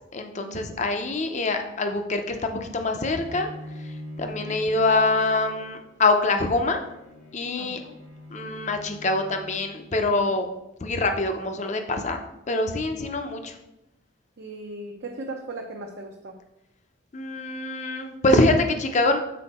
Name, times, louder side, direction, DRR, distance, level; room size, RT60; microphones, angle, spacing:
voice 1, 0.1-3.5 3.8-3.9 4.2-6.8 7.3-7.8 8.3-10.5 10.8-12.2 12.5-13.6 17.1-19.2, left 2 dB, 35° left, 6 dB, 0.6 m, -24 dB
Bowed string instrument, 3.2-10.2, left 1 dB, 85° left, 2.2 m, -43 dB
voice 2, 4.2-4.6 7.6-7.9 14.4-16.3, right 2 dB, 55° right, 1 dB, 0.6 m, -38 dB
6.3 x 4.3 x 4.3 m, 0.89 s
head